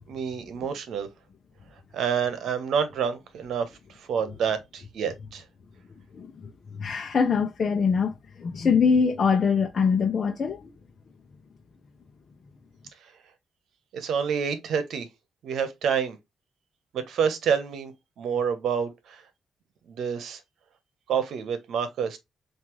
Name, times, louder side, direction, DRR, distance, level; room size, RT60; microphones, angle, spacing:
voice 1, 0.1-1.1 1.9-3.7 4.1-5.4 13.9-15.1 15.4-16.2 16.9-17.9 18.2-19.2 19.9-20.4 21.1-22.2, right 7 dB, 75° right, 1.0 m, -28 dB
voice 2, 6.1-10.7, left 5 dB, 55° left, 0.8 m, -24 dB
5.9 x 2.7 x 3.1 m
supercardioid pair, 50°, 0 cm